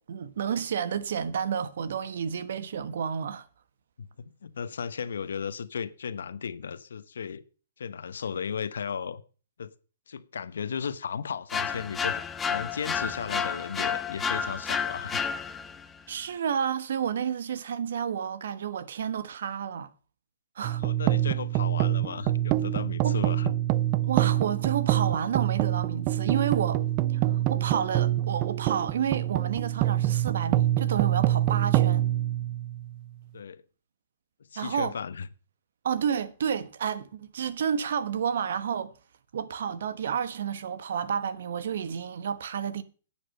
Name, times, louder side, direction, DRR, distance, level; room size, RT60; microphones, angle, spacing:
voice 1, 0.0-3.5 16.1-19.9 20.5-20.8 23.0-23.2 24.1-26.8 27.2-32.0 34.6-34.9 35.8-38.9 39.3-42.8, right 8 dB, 70° right, 1.2 m, -30 dB
voice 2, 4.0-7.4 7.8-9.2 9.6-9.7 10.1-12.2 12.5-15.2 20.8-23.5 33.3-33.6 34.5-35.3, left 6 dB, 80° left, 1.0 m, -35 dB
sound 1, 11.5-15.8, left 6 dB, 15° left, 0.8 m, -30 dB
sound 2, 20.6-33.0, right 14 dB, 35° right, 0.6 m, -26 dB
10.0 x 8.7 x 5.4 m
hypercardioid pair, 135°, 0 cm